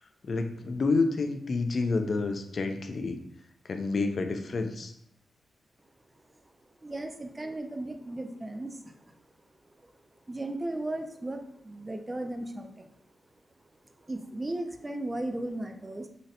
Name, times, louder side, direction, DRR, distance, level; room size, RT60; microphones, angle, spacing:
voice 1, 0.2-3.2 3.7-4.9, left 3 dB, 55° left, 6 dB, 0.4 m, -29 dB
voice 2, 6.8-9.2 10.3-12.9 14.1-16.1, right 1 dB, 20° right, 5 dB, 0.3 m, -36 dB
3.9 x 2.1 x 2.6 m, 0.77 s
cardioid pair, 85°, 0 cm